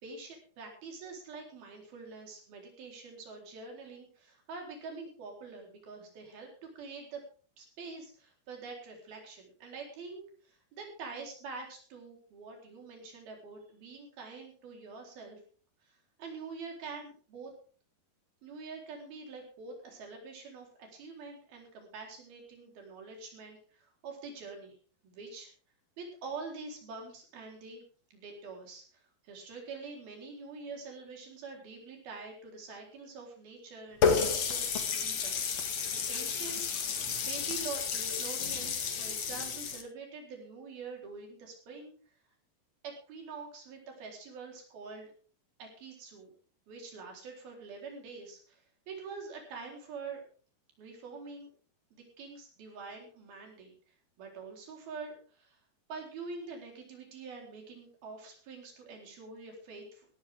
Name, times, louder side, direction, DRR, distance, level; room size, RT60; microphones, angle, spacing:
voice 1, 0.0-7.2 7.6-15.4 15.8-17.5 18.4-24.7 25.0-25.5 26.0-27.8 28.1-35.4 35.7-36.6 37.2-41.9 42.8-45.1 45.6-46.3 46.7-50.2 50.8-51.5 51.9-53.7 54.2-55.6 55.9-60.1, right 4 dB, 60° right, 1 dB, 5.8 m, -45 dB
Water tap faucet, 34.0-39.8, left 6 dB, 50° left, 2.4 m, -31 dB
17.0 x 14.0 x 3.7 m, 0.41 s
omnidirectional pair, 4.9 m